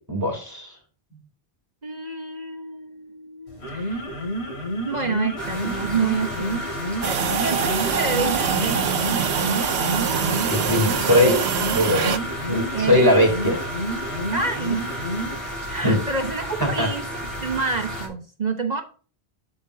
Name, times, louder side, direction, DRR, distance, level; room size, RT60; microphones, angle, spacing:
voice 1, 0.1-0.7 10.5-11.4 11.7-12.1 12.5-13.6 15.8-16.0 16.6-16.9, left 1 dB, 20° right, -1 dB, 3.4 m, -20 dB
voice 2, 1.8-4.0 4.9-6.6 7.0-8.9 11.1-11.4 12.7-13.3 14.3-14.8 15.7-17.1 17.4-18.8, right 4 dB, 45° right, 5 dB, 1.1 m, -28 dB
sound 1, 3.5-15.5, equal, 80° left, 3.0 m, -30 dB
sound 2, 5.4-18.1, equal, 60° left, 3.1 m, -33 dB
sound 3, 7.0-12.2, right 7 dB, 85° right, 1.0 m, -24 dB
8.1 x 8.0 x 2.8 m, 0.38 s
omnidirectional pair, 1.1 m